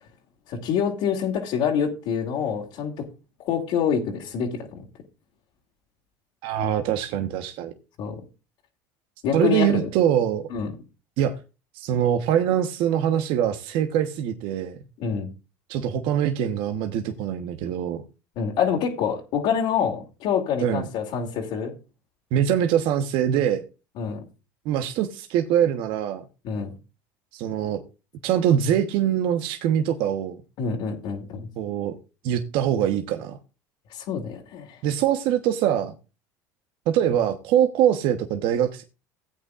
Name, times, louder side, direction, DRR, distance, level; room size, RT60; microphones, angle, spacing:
voice 1, 0.5-2.9 3.4-4.8 8.0-8.2 9.2-9.9 10.5-10.7 15.0-15.3 18.4-21.7 24.0-24.2 26.4-26.7 30.6-31.5 33.9-34.8, left 7 dB, 65° left, 2.5 m, -26 dB
voice 2, 6.4-7.7 9.3-10.5 11.2-11.3 11.7-14.8 15.7-18.0 20.6-20.9 22.3-23.6 24.6-26.2 27.3-27.8 28.2-30.4 31.6-32.0 32.2-33.4 34.8-35.9 36.9-38.8, right 10 dB, 65° right, 1.1 m, -23 dB
16.5 x 8.5 x 2.5 m
supercardioid pair, 90°, 9 cm